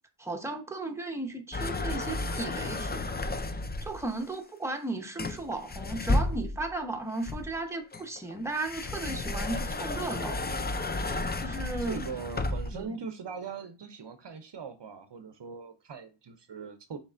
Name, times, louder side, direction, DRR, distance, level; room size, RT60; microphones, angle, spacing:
voice 1, 0.2-3.1 3.8-10.4 11.4-12.0 12.7-13.0, right 2 dB, 5° right, 0.8 m, -35 dB
sound 1, 1.5-4.1 5.2-6.7 7.2-12.8, left 2 dB, 20° left, 0.4 m, -32 dB
voice 2, 11.8-17.0, right 5 dB, 55° right, 0.6 m, -40 dB
6.4 x 3.2 x 2.5 m
wide cardioid pair, 80°, 50 cm